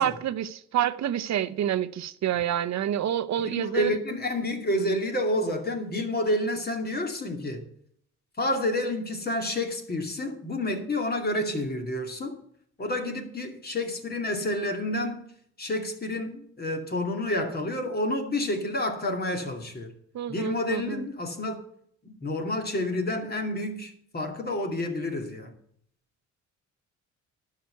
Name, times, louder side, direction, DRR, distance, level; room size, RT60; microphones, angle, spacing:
voice 1, 0.0-4.0 20.1-21.0, right 10 dB, 65° right, 0.8 m, -28 dB
voice 2, 3.4-7.7 8.4-12.4 12.8-15.3 15.6-19.9 20.3-21.6 22.0-25.5, left 1 dB, 30° left, 2.5 m, -29 dB
11.5 x 5.9 x 9.1 m
cardioid pair, 90°, 30 cm